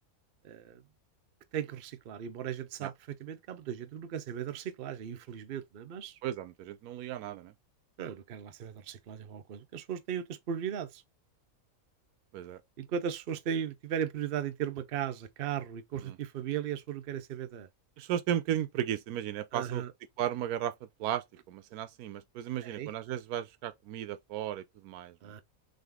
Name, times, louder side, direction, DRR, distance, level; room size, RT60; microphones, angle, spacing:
voice 1, 0.4-0.8 1.5-6.2 8.0-11.0 12.8-17.7 19.5-19.9 22.6-22.9 25.2-25.4, right 9 dB, 55° right, 0.7 m, -37 dB
voice 2, 6.2-7.5 12.3-12.6 16.0-16.2 18.0-19.8 20.2-20.7 21.0-25.3, right 11 dB, 85° right, 1.1 m, -35 dB
3.9 x 3.3 x 3.5 m
omnidirectional pair, 1.5 m